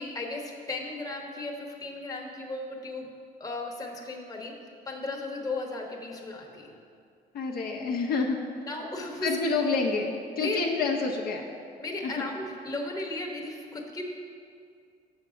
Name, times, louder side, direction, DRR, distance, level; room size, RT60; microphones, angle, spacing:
voice 1, 0.0-3.1 3.4-4.5 4.9-6.7 8.7-9.3 10.4-10.6 11.8-14.2, left 2 dB, 20° left, 0 dB, 1.0 m, -35 dB
voice 2, 7.3-8.4 9.2-11.5 12.0-12.2, left 4 dB, 60° left, 0 dB, 0.8 m, -28 dB
6.6 x 6.0 x 5.1 m, 2.3 s
cardioid pair, 110°, 17 cm